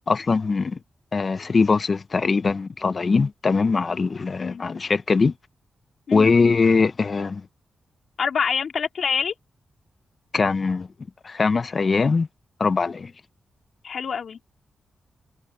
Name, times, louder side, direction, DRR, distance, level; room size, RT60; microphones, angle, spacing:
voice 1, 0.1-0.8 1.1-5.3 6.1-7.4 10.3-10.9 11.2-12.3 12.6-13.1, left 4 dB, 50° left, 0.9 m, -21 dB
voice 2, 8.2-9.3 13.8-14.4, left 6 dB, 70° left, 3.2 m, -26 dB
cardioid pair, 55°, 0 cm